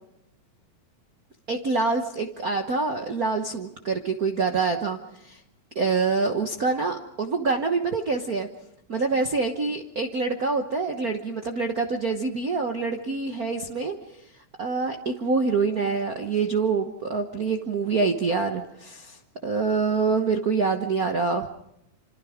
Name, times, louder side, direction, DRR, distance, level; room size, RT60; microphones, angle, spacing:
voice 1, 1.5-5.0 5.2-5.4 5.7-8.5 8.9-13.9 14.6-19.2 19.4-21.5, right 4 dB, 80° right, 5 dB, 0.8 m, -26 dB
26.5 x 26.0 x 5.1 m, 0.82 s
omnidirectional pair, 3.5 m